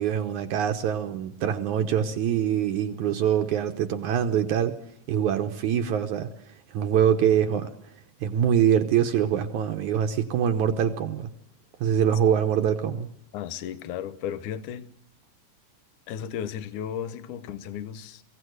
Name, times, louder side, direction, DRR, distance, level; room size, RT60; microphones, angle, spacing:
voice 1, 0.0-4.7 5.1-6.3 6.7-7.7 8.2-11.3 11.8-13.1, right 9 dB, 70° right, 2.1 m, -24 dB
voice 2, 13.3-14.9 16.1-18.2, left 9 dB, 70° left, 2.3 m, -34 dB
22.5 x 16.5 x 8.0 m
omnidirectional pair, 4.1 m